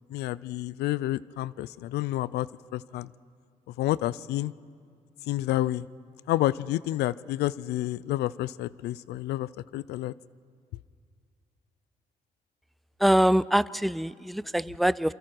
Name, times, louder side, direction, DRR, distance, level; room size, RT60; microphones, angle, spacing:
voice 1, 0.1-2.5 2.7-3.1 3.8-4.5 5.3-5.9 6.3-10.1, left 15 dB, 85° left, 21 dB, 0.5 m, -29 dB
voice 2, 13.0-15.1, equal, ahead, 19 dB, 0.4 m, -24 dB
27.5 x 24.0 x 4.6 m, 2.2 s
supercardioid pair, 55°, 17 cm